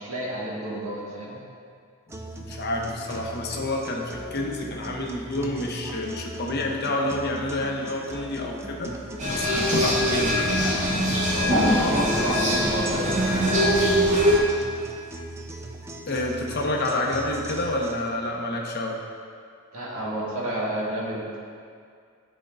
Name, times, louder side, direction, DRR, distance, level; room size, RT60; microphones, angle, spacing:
voice 1, 0.0-1.4 9.8-9.9 11.3-13.9 19.7-21.4, right 1 dB, 80° right, -6 dB, 1.5 m, -30 dB
sound 1, 2.1-18.1, right 1 dB, 10° right, 0.3 m, -39 dB
voice 2, 2.4-8.9 9.3-10.6 10.9-11.1 12.2-12.4 16.1-19.0, left 1 dB, 50° left, 0 dB, 0.7 m, -28 dB
sound 2, 9.2-14.4, equal, 35° right, 1.0 m, -22 dB
10.0 x 4.4 x 2.5 m, 2.2 s
head